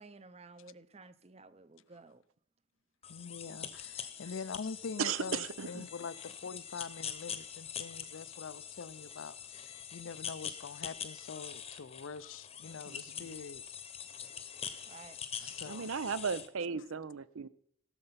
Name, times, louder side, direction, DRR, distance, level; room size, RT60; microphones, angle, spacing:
voice 1, 0.0-2.2 4.2-4.4 14.8-15.2, right 3 dB, 30° right, 0.6 m, -54 dB
sound 1, 3.0-16.5, left 8 dB, 30° left, 0.9 m, -44 dB
voice 2, 3.1-13.6 15.4-16.0, left 5 dB, 70° left, 0.5 m, -44 dB
voice 3, 5.0-5.9 12.9-13.3 15.6-17.5, right 6 dB, 85° right, 0.7 m, -36 dB
17.0 x 6.7 x 5.7 m
head